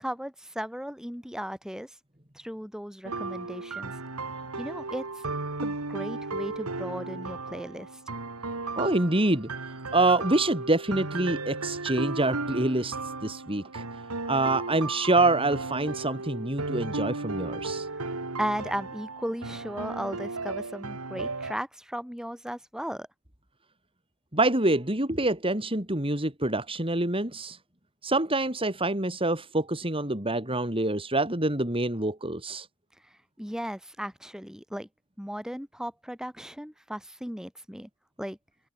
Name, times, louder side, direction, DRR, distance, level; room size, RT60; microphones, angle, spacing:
voice 1, 0.0-2.0 2.4-3.9 4.6-5.1 5.6-8.1 17.9-18.1 18.4-23.1 33.4-34.9 35.2-37.9 38.2-38.4, equal, 5° right, 5.3 m, -36 dB
sound 1, 3.0-21.5, right 3 dB, 85° right, 2.7 m, -35 dB
voice 2, 8.8-9.5 9.9-13.8 14.3-17.9 24.3-27.6 28.0-32.7, right 2 dB, 25° right, 4.8 m, -26 dB
head